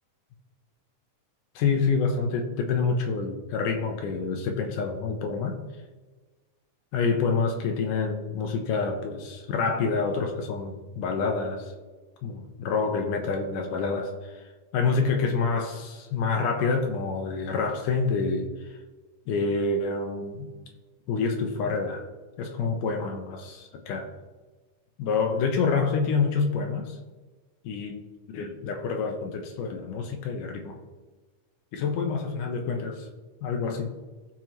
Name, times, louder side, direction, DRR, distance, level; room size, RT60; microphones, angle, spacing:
voice 1, 1.6-5.6 6.9-11.7 12.2-14.4 14.7-18.5 19.3-20.5 21.1-22.1 22.4-24.1 25.0-27.0 27.6-28.0 28.3-30.8 31.7-33.1 33.4-33.9, left 4 dB, 75° left, 3 dB, 2.6 m, -27 dB
17.0 x 5.6 x 3.1 m, 1.3 s
omnidirectional pair, 3.8 m